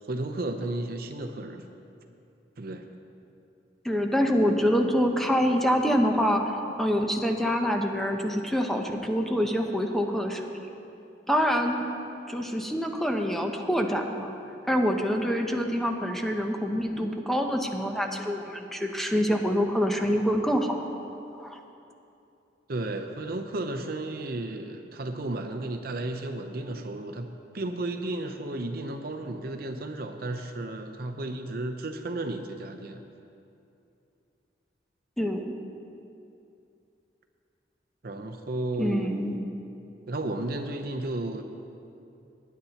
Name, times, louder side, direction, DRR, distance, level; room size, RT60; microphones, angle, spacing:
voice 1, 0.1-1.7 2.6-2.9 22.7-33.0 38.0-39.2 40.1-41.4, right 2 dB, 60° right, 6 dB, 0.7 m, -33 dB
voice 2, 3.8-10.5 11.3-11.9 12.3-14.3 14.7-20.8 21.3-21.6 35.2-35.4 38.8-39.4, equal, ahead, 2 dB, 0.7 m, -26 dB
20.0 x 9.5 x 2.9 m, 2.7 s
head